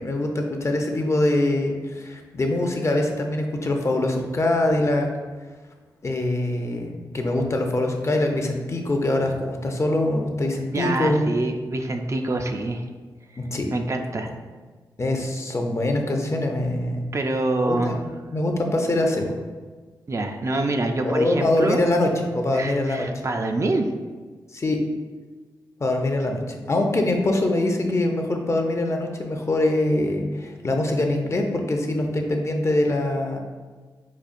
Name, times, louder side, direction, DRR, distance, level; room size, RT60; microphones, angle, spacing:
voice 1, 0.0-5.1 6.0-11.2 13.4-13.7 15.0-17.1 17.6-18.0 18.3-19.4 21.0-23.1 24.5-24.8 25.8-33.4, left 1 dB, 35° left, 3 dB, 0.5 m, -23 dB
voice 2, 10.7-12.9 13.7-14.3 17.1-17.9 20.1-21.9 22.5-23.9, right 2 dB, 35° right, 4 dB, 0.4 m, -25 dB
4.9 x 2.3 x 2.5 m, 1.4 s
cardioid pair, 50°, 8 cm